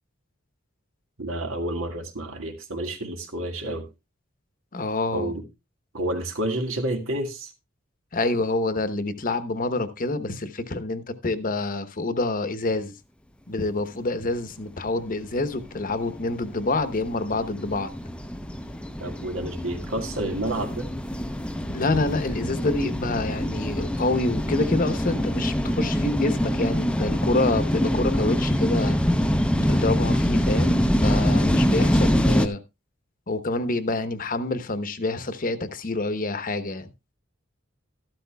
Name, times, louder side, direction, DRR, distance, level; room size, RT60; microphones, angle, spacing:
voice 1, 1.2-3.9 5.1-5.4 5.9-7.5 19.0-20.9, right 1 dB, 85° right, 1.9 m, -29 dB
voice 2, 4.7-5.3 8.1-12.9 13.5-17.9 21.7-29.1 29.6-32.6 33.3-36.9, left 2 dB, 45° left, 0.9 m, -27 dB
sound 1, 14.7-32.5, equal, 5° left, 0.6 m, -25 dB
13.0 x 12.0 x 2.3 m
head